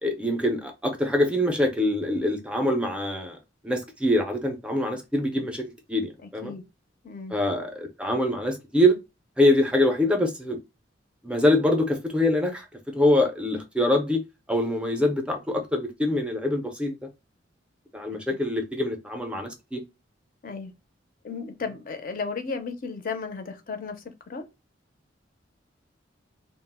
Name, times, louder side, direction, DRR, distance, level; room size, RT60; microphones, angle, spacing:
voice 1, 0.0-3.4 3.6-6.5 7.3-9.0 9.4-10.6 11.2-12.7 12.9-14.2 14.5-17.0 17.9-19.8, left 1 dB, 5° right, 0.4 m, -24 dB
voice 2, 6.2-6.6 7.0-7.3 18.3-18.4 20.4-20.7 21.2-24.4, left 4 dB, 50° left, 0.5 m, -34 dB
2.4 x 2.0 x 3.4 m
head